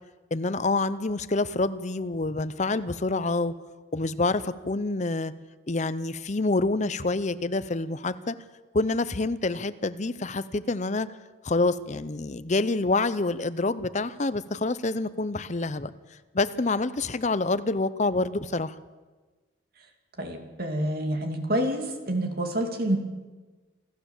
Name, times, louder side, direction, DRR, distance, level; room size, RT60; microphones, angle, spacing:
voice 1, 0.3-3.5 3.9-5.3 5.7-8.4 8.7-11.1 11.4-15.9 16.3-18.7, left 3 dB, 35° left, 14 dB, 0.7 m, -27 dB
voice 2, 20.2-23.0, right 1 dB, 50° right, 4 dB, 2.5 m, -28 dB
28.0 x 12.5 x 7.3 m, 1.3 s
head